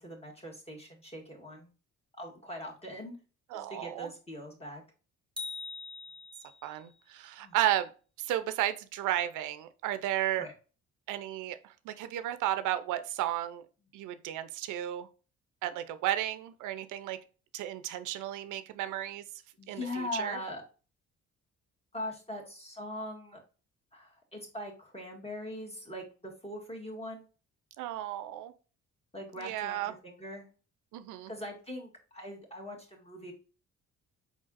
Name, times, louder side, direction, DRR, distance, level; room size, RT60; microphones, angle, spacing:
voice 1, 0.0-1.7 2.2-3.2 3.5-4.8 7.4-7.6 10.4-10.5 19.6-20.6 21.9-23.4 23.9-27.3 29.1-30.5 31.3-33.3, left 1 dB, 20° left, 0 dB, 1.8 m, -41 dB
voice 2, 3.5-4.1 6.6-7.9 8.2-10.5 11.1-13.6 13.9-15.1 15.6-17.2 17.5-19.2 19.7-20.4 27.8-28.5 29.4-29.9 30.9-31.3, right 12 dB, 90° right, 12 dB, 0.5 m, -33 dB
sound 1, 5.4-6.8, left 4 dB, 15° right, 1.0 m, -42 dB
5.0 x 3.9 x 2.4 m, 0.35 s
cardioid pair, 90°, 30 cm